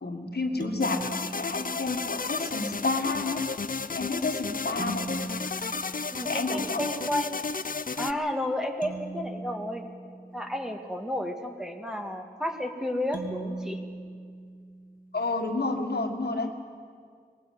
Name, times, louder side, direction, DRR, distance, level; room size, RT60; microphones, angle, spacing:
voice 1, 0.0-3.4 3.9-5.1 6.3-6.8 15.1-16.5, left 3 dB, 75° left, 4 dB, 1.8 m, -30 dB
sound 1, 0.6-2.3 4.8-6.8 8.8-10.9 13.1-15.2, right 3 dB, 55° right, 2.9 m, -40 dB
sound 2, 0.8-8.1, left 4 dB, 55° left, 0.7 m, -33 dB
voice 2, 6.1-7.5 8.0-9.8 10.3-13.8, left 1 dB, 5° right, 4 dB, 2.0 m, -32 dB
21.0 x 15.5 x 9.3 m, 2.1 s
wide cardioid pair, 65°, 17 cm